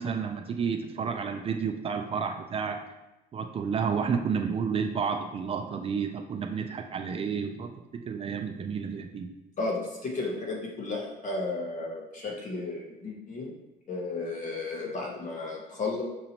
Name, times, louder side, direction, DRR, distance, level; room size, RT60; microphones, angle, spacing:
voice 1, 0.0-2.8 3.3-9.3, right 6 dB, 35° right, 5 dB, 0.3 m, -31 dB
voice 2, 9.6-13.5 13.9-16.0, left 3 dB, 45° left, -2 dB, 1.3 m, -33 dB
6.1 x 2.8 x 2.9 m, 0.99 s
cardioid pair, 110°, 17 cm